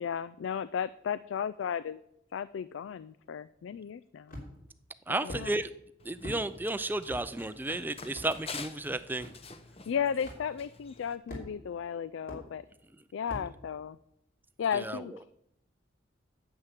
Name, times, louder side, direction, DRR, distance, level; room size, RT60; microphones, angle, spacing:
voice 1, 0.0-2.0 2.3-4.4 5.2-5.6 9.9-12.6 13.1-14.0 14.6-15.2, left 7 dB, 75° left, 15 dB, 0.3 m, -34 dB
sound 1, 4.3-4.7 5.3-5.5 6.2-6.4 7.1-7.3 8.1-8.3 9.2-9.3 10.2-10.4 11.3-11.7 12.3-12.4 13.3-13.5, equal, 45° left, 3.2 m, -41 dB
voice 2, 5.1-5.7 6.0-9.3 14.7-15.0, right 2 dB, 10° right, 13 dB, 0.4 m, -33 dB
Run, 6.0-11.2, left 4 dB, 30° left, 0.8 m, -47 dB
9.8 x 7.2 x 8.3 m, 0.80 s
head